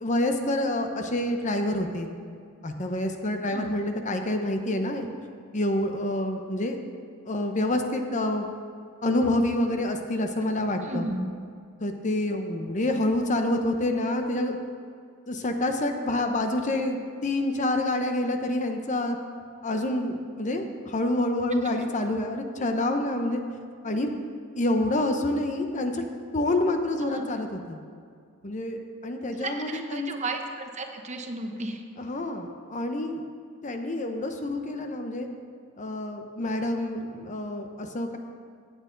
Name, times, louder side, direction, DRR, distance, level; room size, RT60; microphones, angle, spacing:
voice 1, 0.0-2.1 2.6-5.1 5.5-6.8 7.3-8.5 9.0-11.1 11.8-14.6 15.3-19.2 19.6-23.4 23.8-24.1 24.6-26.0 26.3-27.8 28.4-30.1 32.0-33.2 33.6-35.3 35.8-38.2, left 1 dB, 35° left, 5 dB, 0.8 m, -27 dB
voice 2, 10.8-11.2 21.6-21.7 27.0-27.3 29.4-31.8, right 2 dB, 35° right, 4 dB, 0.9 m, -34 dB
16.0 x 8.8 x 3.9 m, 2.2 s
head